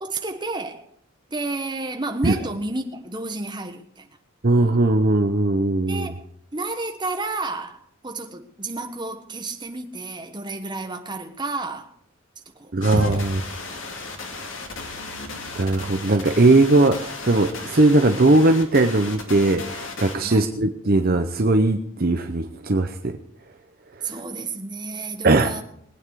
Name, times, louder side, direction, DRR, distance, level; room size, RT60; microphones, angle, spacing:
voice 1, 0.0-0.9 1.3-4.1 5.9-6.2 6.5-11.9 12.5-13.2 20.2-20.5 24.0-25.6, right 2 dB, 20° right, 1.3 m, -31 dB
voice 2, 4.4-6.1 12.7-13.4 15.6-23.2 24.0-24.1 25.2-25.6, right 2 dB, 45° right, 0.7 m, -19 dB
sound 1, 12.8-20.1, left 3 dB, 70° left, 2.3 m, -34 dB
21.5 x 9.0 x 4.8 m
head